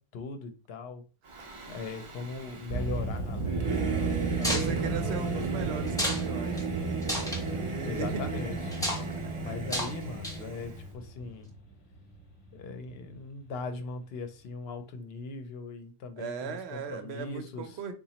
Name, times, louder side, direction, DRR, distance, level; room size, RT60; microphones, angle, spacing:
voice 1, 0.1-1.0 1.7-5.4 7.8-8.7 9.4-11.5 12.5-17.8, left 4 dB, 75° left, 0.8 m, -40 dB
Singing / Musical instrument, 1.3-10.9, right 4 dB, 40° right, 0.4 m, -34 dB
sound 1, 2.7-13.7, right 2 dB, 35° left, 0.8 m, -37 dB
sound 2, 4.4-4.7 5.9-6.2 6.6-6.7 7.0-7.4 8.7-9.0 9.7-9.9 10.2-10.5, equal, 5° left, 0.6 m, -31 dB
voice 2, 4.4-6.7 7.4-8.4 9.4-9.6 16.2-17.9, right 6 dB, 85° right, 0.8 m, -38 dB
3.9 x 2.3 x 2.8 m
omnidirectional pair, 1.1 m